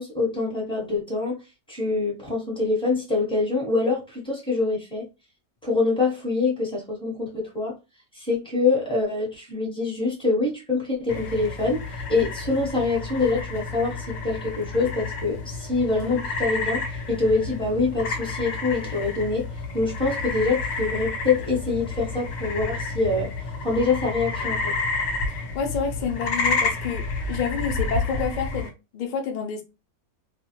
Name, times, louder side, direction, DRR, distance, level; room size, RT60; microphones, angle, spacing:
voice 1, 0.0-1.3 1.7-5.1 5.6-7.7 8.1-11.8 12.1-19.5 19.7-23.3 23.6-24.7, left 3 dB, 5° left, 0.9 m, -25 dB
sound 1, 11.1-28.7, left 3 dB, 55° left, 0.9 m, -30 dB
voice 2, 25.3-29.6, left 6 dB, 85° left, 0.4 m, -29 dB
2.5 x 2.1 x 2.8 m
omnidirectional pair, 1.6 m